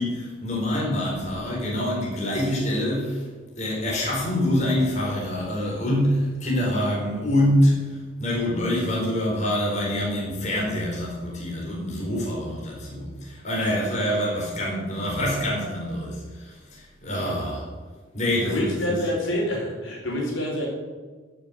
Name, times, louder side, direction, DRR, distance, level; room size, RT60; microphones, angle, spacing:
voice 1, 0.0-3.2 3.5-17.7 18.1-19.0, left 1 dB, 35° left, -3 dB, 4.3 m, -25 dB
voice 2, 18.4-20.7, left 1 dB, 75° left, -2 dB, 4.7 m, -27 dB
14.0 x 6.9 x 9.2 m, 1.4 s
head